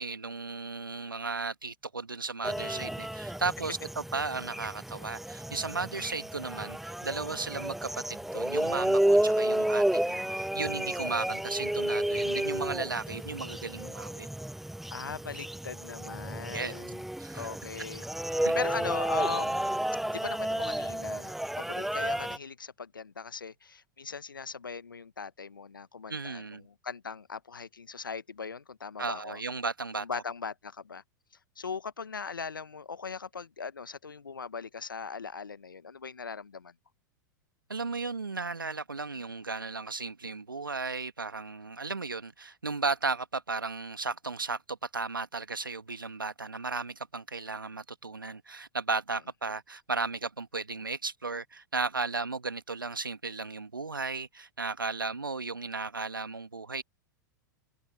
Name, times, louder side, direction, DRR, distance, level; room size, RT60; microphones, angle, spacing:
voice 1, 0.0-14.3 16.5-16.7 17.2-17.5 18.4-18.5 26.1-26.7 29.0-30.2 37.7-56.8, right 4 dB, 90° right, 1.8 m, -35 dB
sound 1, 2.4-22.4, right 1 dB, ahead, 0.8 m, -31 dB
voice 2, 2.5-2.9 14.9-17.0 17.3-19.6 20.1-29.4 30.0-31.0 31.6-36.7, left 5 dB, 85° left, 1.2 m, -39 dB
figure-of-eight pair, 95°, 11 cm